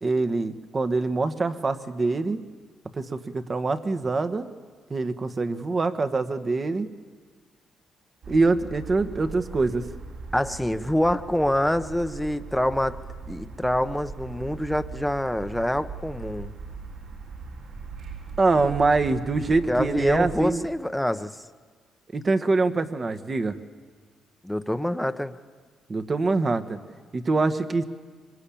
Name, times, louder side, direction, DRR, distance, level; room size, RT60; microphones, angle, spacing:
voice 1, 0.0-2.4 3.0-4.4 4.9-6.9 8.3-9.8 18.4-20.6 22.1-23.5 25.9-26.8 27.1-27.9, right 3 dB, 35° right, 9 dB, 1.4 m, -24 dB
sound 1, 8.2-20.5, right 4 dB, 75° right, 6.2 m, -40 dB
voice 2, 10.3-13.0 13.3-16.5 19.7-21.4 24.4-25.3, left 1 dB, 5° left, 10 dB, 1.0 m, -26 dB
25.0 x 22.0 x 8.7 m, 1.5 s
cardioid pair, 90°, 0 cm